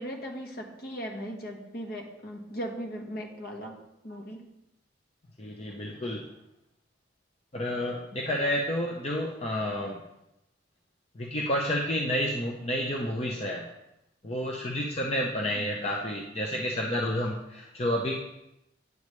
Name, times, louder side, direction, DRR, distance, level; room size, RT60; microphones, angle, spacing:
voice 1, 0.0-3.8 4.0-4.4 15.5-15.7, equal, 55° left, 3 dB, 1.1 m, -38 dB
voice 2, 5.4-6.3 7.5-10.0 11.1-13.7 14.2-18.1, left 1 dB, 35° left, -1 dB, 0.7 m, -30 dB
9.4 x 7.0 x 3.2 m, 0.85 s
head